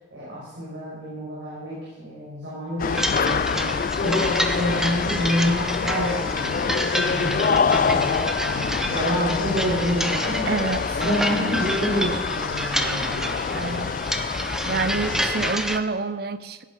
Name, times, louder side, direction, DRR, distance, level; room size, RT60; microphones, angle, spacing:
voice 1, 0.1-6.6 7.0-10.5 11.0-13.2 14.6-14.9, equal, 80° right, -8 dB, 5.5 m, -28 dB
sound 1, 2.8-15.5, left 6 dB, 45° left, 0.3 m, -26 dB
sound 2, 2.9-15.8, equal, 5° right, 0.7 m, -29 dB
voice 2, 10.5-11.0 11.3-11.6 13.5-14.0 14.7-16.6, right 3 dB, 55° right, 13 dB, 0.7 m, -28 dB
16.5 x 9.4 x 6.0 m, 1.3 s
head